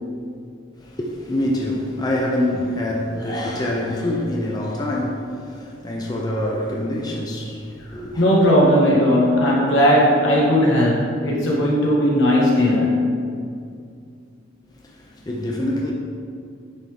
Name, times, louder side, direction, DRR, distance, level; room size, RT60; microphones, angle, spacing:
voice 1, 0.8-8.2 14.7-15.9, left 1 dB, 20° left, 0.5 m, -25 dB
voice 2, 7.9-13.1, equal, 85° left, 1.5 m, -17 dB
9.8 x 3.5 x 3.5 m
head